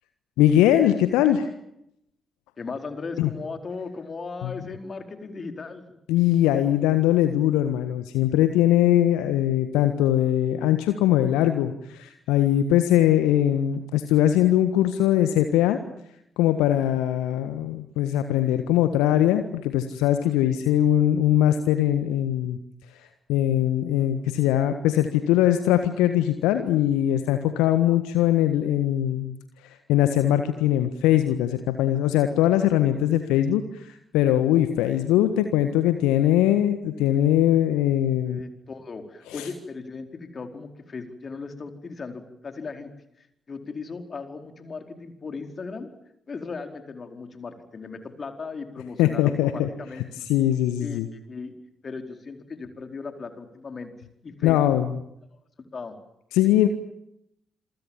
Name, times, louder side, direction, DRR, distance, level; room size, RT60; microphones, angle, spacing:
voice 1, 0.4-1.5 3.2-3.3 4.4-4.5 6.1-15.8 16.4-22.6 23.3-29.3 29.9-38.4 39.3-39.5 49.0-49.7 50.3-51.1 54.4-54.9 56.3-56.7, left 12 dB, 70° left, 9 dB, 1.5 m, -21 dB
voice 2, 2.6-5.8 38.2-42.9 43.5-45.9 46.3-50.2 50.8-51.5 51.8-53.9 54.2-54.6 55.7-56.0, left 4 dB, 40° left, 6 dB, 4.5 m, -37 dB
27.5 x 24.0 x 7.4 m, 0.78 s
figure-of-eight pair, 40°, 0 cm